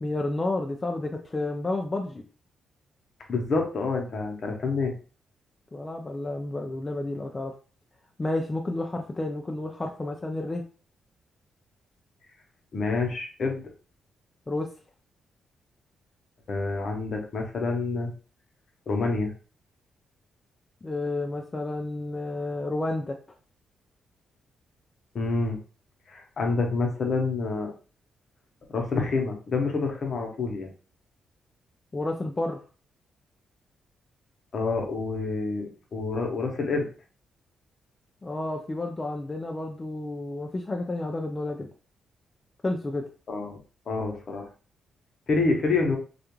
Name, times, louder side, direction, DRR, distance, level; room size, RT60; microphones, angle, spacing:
voice 1, 0.0-2.2 5.7-7.5 8.2-10.6 14.5-14.7 20.8-23.2 31.9-32.6 38.2-41.7 42.6-43.1, left 2 dB, 25° left, 2 dB, 0.3 m, -31 dB
voice 2, 3.3-4.9 12.7-13.6 16.5-18.1 18.9-19.3 25.1-25.6 26.1-27.7 28.7-30.7 34.5-36.9 43.3-43.6 43.9-44.5 45.3-46.0, left 3 dB, 55° left, 2 dB, 0.7 m, -27 dB
2.4 x 2.2 x 2.9 m, 0.37 s
cardioid pair, 80°, 0 cm